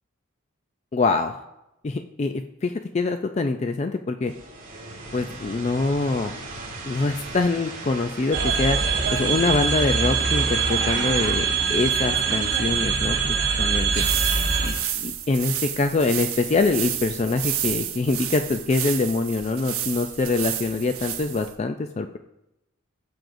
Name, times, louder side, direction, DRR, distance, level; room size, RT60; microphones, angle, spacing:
voice 1, 0.9-1.4 1.8-4.3 5.1-6.3 6.8-8.8 9.1-14.0 14.6-22.2, left 3 dB, 30° left, 7 dB, 0.3 m, -24 dB
sound 1, 4.2-15.0, right 2 dB, 35° right, 3.9 m, -40 dB
sound 2, 8.3-14.7, right 5 dB, 55° right, 2.2 m, -23 dB
sound 3, 13.8-21.6, right 11 dB, 75° right, 1.0 m, -31 dB
17.5 x 7.7 x 2.6 m, 0.92 s
head